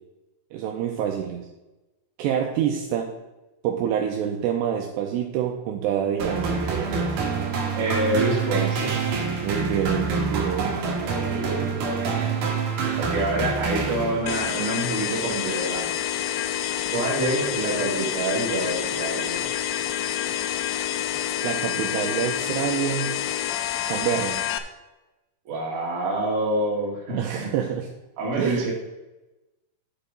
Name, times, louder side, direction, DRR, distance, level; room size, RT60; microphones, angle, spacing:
voice 1, 0.5-1.5 2.2-3.1 3.6-6.6 9.4-10.7 21.4-23.2 23.9-24.4 27.2-27.9 28.4-28.7, right 9 dB, 80° right, 2 dB, 2.6 m, -26 dB
sound 1, 6.2-14.5, right 5 dB, 60° right, 2.5 m, -26 dB
voice 2, 7.8-8.9 11.1-11.7 12.0-12.3 12.8-15.9 16.9-19.4 25.5-27.5 28.2-28.7, right 2 dB, 40° right, -3 dB, 2.3 m, -27 dB
sound 2, 14.3-24.6, left 10 dB, 85° left, 2.6 m, -28 dB
12.0 x 4.6 x 5.1 m, 1.0 s
omnidirectional pair, 5.4 m